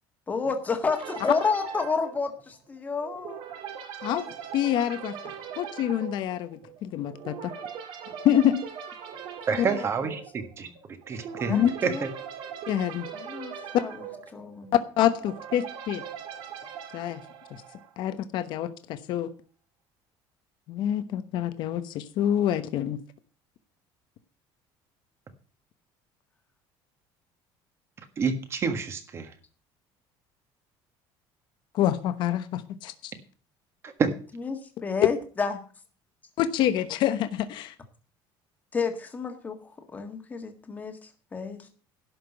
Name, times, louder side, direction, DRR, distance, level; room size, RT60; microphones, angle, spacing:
voice 1, 0.3-3.4 9.5-10.1 10.6-10.7 11.5-12.0 13.1-14.0 14.3-14.7 34.4-35.6 38.7-41.7, left 5 dB, 15° left, 6 dB, 1.6 m, -31 dB
sound 1, 0.9-18.1, right 8 dB, 55° right, 2.2 m, -41 dB
voice 2, 4.5-5.1 5.6-7.5 8.2-8.6 11.5-11.7 12.7-13.1 13.7-13.8 15.0-16.0 16.9-17.2 17.5-17.6 18.0-19.3 20.7-23.0 31.7-32.9 36.4-37.7, left 11 dB, 50° left, 11 dB, 1.0 m, -26 dB
voice 3, 9.5-10.7 11.1-11.6 11.8-12.1 28.2-29.3 33.8-34.1, right 5 dB, 25° right, 9 dB, 1.5 m, -28 dB
11.5 x 5.9 x 8.2 m, 0.40 s
cardioid pair, 180°, 10 cm